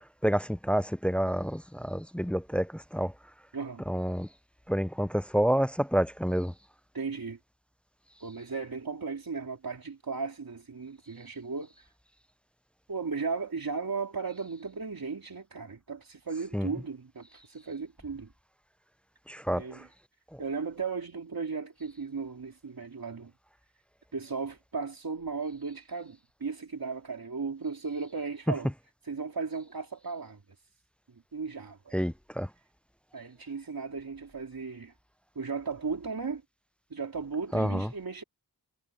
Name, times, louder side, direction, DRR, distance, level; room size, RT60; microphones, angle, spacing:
voice 1, 0.2-3.1 3.9-4.3 4.7-6.5 16.5-16.7 19.3-19.9 20.3-20.4 31.9-32.5 37.5-37.9, equal, 5° left, 0.3 m, -29 dB
voice 2, 6.9-7.4 8.2-11.7 12.9-18.3 19.5-19.9 20.4-23.3 24.1-28.7 29.1-30.4 31.3-32.0 33.1-34.9 35.4-36.4 36.9-38.2, right 4 dB, 60° right, 3.4 m, -36 dB
wide cardioid pair, 85°, 39 cm